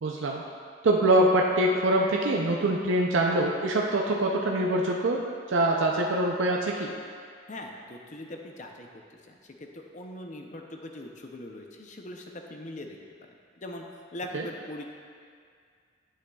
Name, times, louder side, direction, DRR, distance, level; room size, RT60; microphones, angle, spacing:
voice 1, 0.0-0.4 0.8-6.9 14.3-14.4, right 1 dB, 75° right, -1 dB, 0.5 m, -24 dB
voice 2, 7.5-14.9, left 1 dB, 35° left, 2 dB, 0.6 m, -42 dB
10.0 x 7.3 x 2.3 m, 2.2 s
head